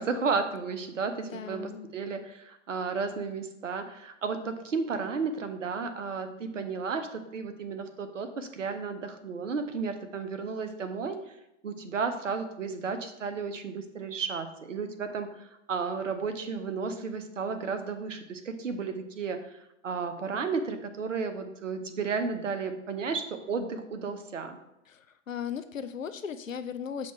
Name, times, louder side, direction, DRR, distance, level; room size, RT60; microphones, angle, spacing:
voice 1, 0.0-11.4 11.6-24.6, right 5 dB, 70° right, 7 dB, 0.8 m, -33 dB
voice 2, 1.2-1.9 24.9-27.1, left 7 dB, 85° left, 11 dB, 0.5 m, -37 dB
6.2 x 2.9 x 5.5 m, 0.88 s
figure-of-eight pair, 105°, 38 cm